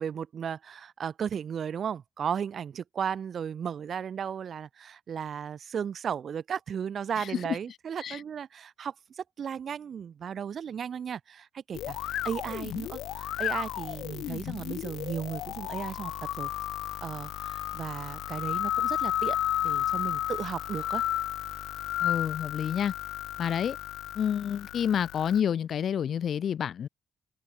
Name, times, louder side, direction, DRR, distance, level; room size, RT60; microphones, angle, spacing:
voice 1, 0.0-16.1 16.4-16.5 17.0-19.4 19.6-21.0, right 7 dB, 50° right, 1.7 m, -35 dB
voice 2, 7.2-7.6 8.0-8.2 22.0-22.9 23.4-23.8 24.1-26.9, left 8 dB, 55° left, 1.3 m, -29 dB
sound 1, 11.7-25.4, left 13 dB, 90° left, 2.1 m, -33 dB
cardioid pair, 140°, 0 cm